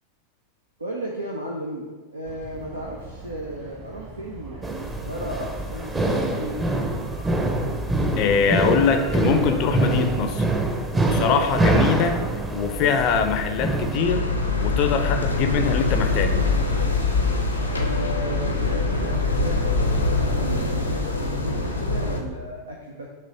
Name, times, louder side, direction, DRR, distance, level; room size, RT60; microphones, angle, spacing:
voice 1, 0.8-6.9 17.7-23.1, equal, 80° right, -1 dB, 0.7 m, -35 dB
sound 1, 2.2-21.8, right 2 dB, 40° right, 1.5 m, -42 dB
sound 2, 4.6-14.0, right 2 dB, 15° right, 0.7 m, -24 dB
voice 2, 8.2-10.4 11.1-12.2 12.5-14.3 14.6-16.4, left 6 dB, 40° left, 7 dB, 0.5 m, -22 dB
sound 3, 13.9-22.2, left 3 dB, 85° left, 0.8 m, -23 dB
6.7 x 3.2 x 5.3 m, 1.3 s
figure-of-eight pair, 90°, 0 cm